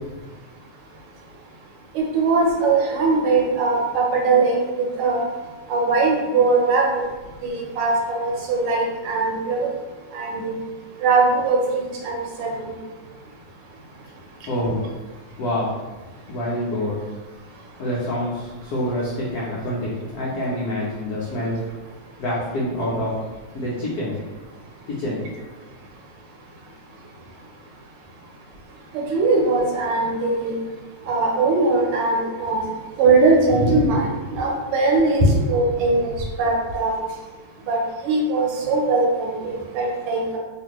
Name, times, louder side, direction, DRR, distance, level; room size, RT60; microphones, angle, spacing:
voice 1, 1.9-4.6 5.0-5.2 5.7-7.1 7.4-9.7 10.1-10.5 11.0-12.7 28.9-30.5 31.1-32.6 33.0-37.0 37.7-40.4, right 3 dB, 80° right, -1 dB, 1.5 m, -20 dB
voice 2, 14.5-14.9 15.4-15.7 16.3-17.0 17.8-21.6 22.2-23.1 23.5-24.2 24.9-25.2, left 1 dB, 85° left, -6 dB, 0.8 m, -26 dB
3.4 x 2.5 x 2.9 m, 1.2 s
omnidirectional pair, 2.4 m